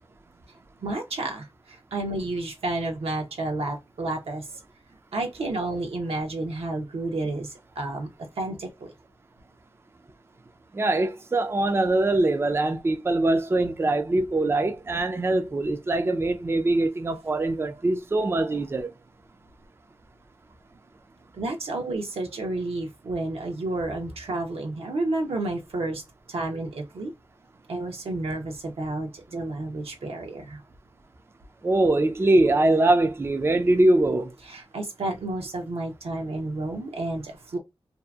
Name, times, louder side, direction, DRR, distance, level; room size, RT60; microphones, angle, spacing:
voice 1, 0.8-4.5 5.1-8.1 8.4-8.9 21.3-26.0 26.3-27.1 27.7-30.6 34.5-37.6, right 2 dB, 75° right, 0.8 m, -31 dB
voice 2, 10.7-18.9 31.6-34.3, right 2 dB, 25° right, 0.4 m, -23 dB
2.7 x 2.5 x 2.3 m
wide cardioid pair, 90°, 10 cm